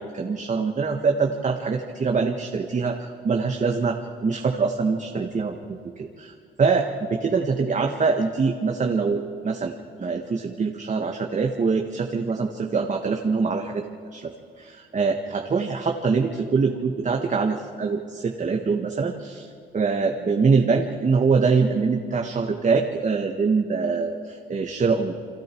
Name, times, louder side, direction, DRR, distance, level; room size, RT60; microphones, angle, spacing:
voice 1, 0.0-13.8 14.1-25.1, right 4 dB, 40° right, 3 dB, 1.6 m, -24 dB
29.5 x 23.0 x 4.6 m, 2.3 s
cardioid pair, 90°, 20 cm